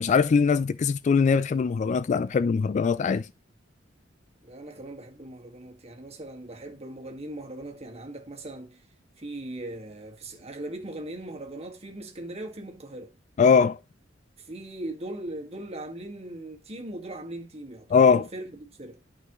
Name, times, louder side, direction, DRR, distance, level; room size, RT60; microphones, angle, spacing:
voice 1, 0.0-3.2 13.4-13.8 17.9-18.2, left 5 dB, 40° left, 0.3 m, -21 dB
voice 2, 4.4-8.8 9.2-13.1 14.4-19.0, right 1 dB, 35° right, 1.9 m, -39 dB
11.5 x 5.5 x 3.1 m
head